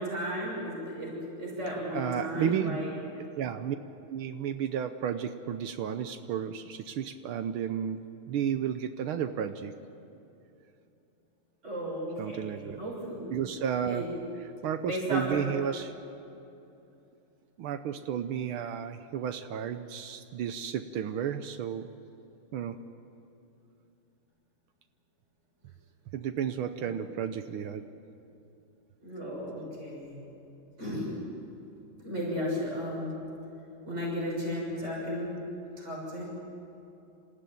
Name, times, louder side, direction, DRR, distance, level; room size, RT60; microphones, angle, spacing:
voice 1, 0.0-2.9 11.6-13.4 13.8-14.1 14.8-15.4 26.8-26.9 29.0-30.2 30.8-31.1 32.0-33.2 33.8-35.3 35.8-36.2, equal, 30° right, -4 dB, 6.7 m, -34 dB
voice 2, 1.9-2.9 3.4-3.7 4.1-8.0 8.3-9.7 12.2-12.8 13.3-14.0 14.6-15.9 17.6-21.9 22.5-22.8 26.1-27.8, right 9 dB, 75° right, 9 dB, 1.6 m, -32 dB
27.0 x 15.5 x 9.4 m, 2.8 s
omnidirectional pair, 2.3 m